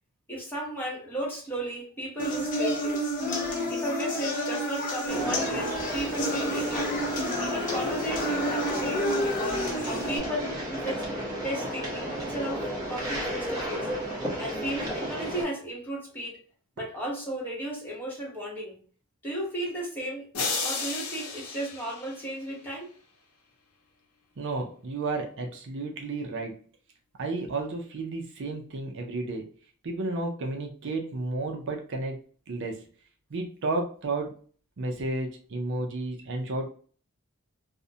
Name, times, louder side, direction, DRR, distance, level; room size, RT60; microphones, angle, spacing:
voice 1, 0.3-3.0 3.7-7.0 7.4-11.0 11.4-12.6 12.9-13.9 14.4-16.4 16.8-18.8 19.2-20.2 20.6-22.9, right 1 dB, 10° left, -4 dB, 0.8 m, -34 dB
sound 1, 2.2-10.2, equal, 35° left, 0.6 m, -30 dB
sound 2, 5.1-15.4, equal, 15° right, 0.9 m, -33 dB
sound 3, 20.3-22.7, left 4 dB, 90° left, 0.6 m, -33 dB
voice 2, 24.4-26.6 27.2-29.5 29.8-32.8 33.3-34.3 34.8-36.7, right 2 dB, 55° right, 2 dB, 0.5 m, -32 dB
2.5 x 2.1 x 2.6 m, 0.43 s
head